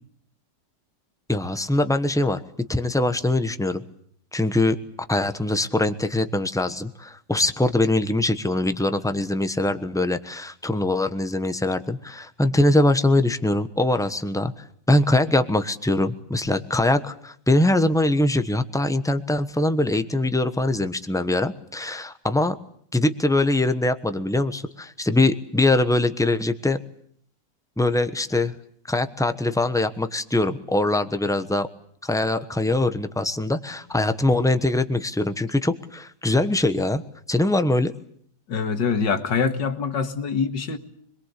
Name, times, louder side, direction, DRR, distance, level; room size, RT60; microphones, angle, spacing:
voice 1, 1.3-2.4 2.7-3.8 4.3-4.8 5.1-14.5 14.9-22.5 22.9-26.8 27.8-28.5 28.9-31.7 32.0-37.0 37.3-37.9, left 2 dB, ahead, 9 dB, 0.9 m, -22 dB
voice 2, 38.5-40.8, left 5 dB, 90° left, 8 dB, 2.4 m, -24 dB
26.0 x 22.5 x 8.4 m, 0.65 s
omnidirectional pair, 1.9 m